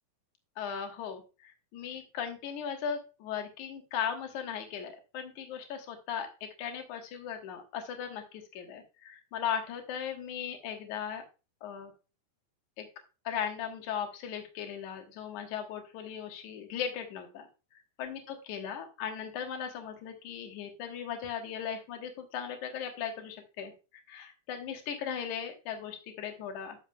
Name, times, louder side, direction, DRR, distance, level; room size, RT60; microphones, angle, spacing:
voice 1, 0.6-11.2 11.6-11.9 12.8-12.9 13.2-17.5 17.7-23.7 24.1-26.8, left 8 dB, 60° left, 4 dB, 2.6 m, -38 dB
11.0 x 7.1 x 2.3 m, 0.31 s
omnidirectional pair, 4.2 m